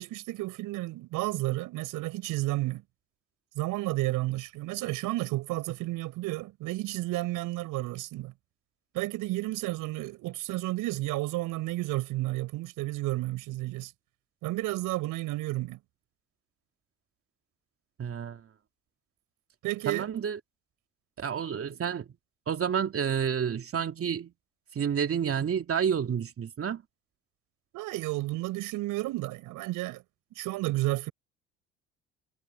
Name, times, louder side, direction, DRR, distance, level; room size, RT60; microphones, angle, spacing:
voice 1, 0.0-2.8 3.6-8.3 8.9-13.9 14.4-15.8 19.6-20.1 27.7-30.0 30.4-31.1, right 18 dB, 70° right, 5.6 m, -32 dB
voice 2, 18.0-18.4 19.9-20.4 21.2-22.1 22.5-24.3 24.7-26.8, right 7 dB, 40° right, 2.7 m, -29 dB
hypercardioid pair, 60°, 33 cm